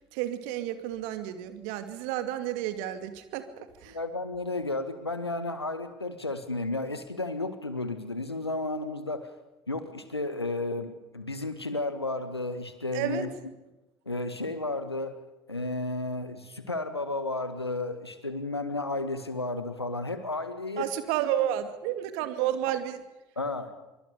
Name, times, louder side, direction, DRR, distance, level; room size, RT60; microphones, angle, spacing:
voice 1, 0.1-4.0 12.9-13.3 20.8-23.0, right 11 dB, 65° right, 10 dB, 2.5 m, -31 dB
voice 2, 3.9-9.3 9.7-13.3 14.0-15.2 15.5-20.9 23.3-23.7, left 2 dB, 90° left, 10 dB, 1.9 m, -33 dB
25.5 x 24.5 x 5.3 m, 1.0 s
figure-of-eight pair, 55°, 13 cm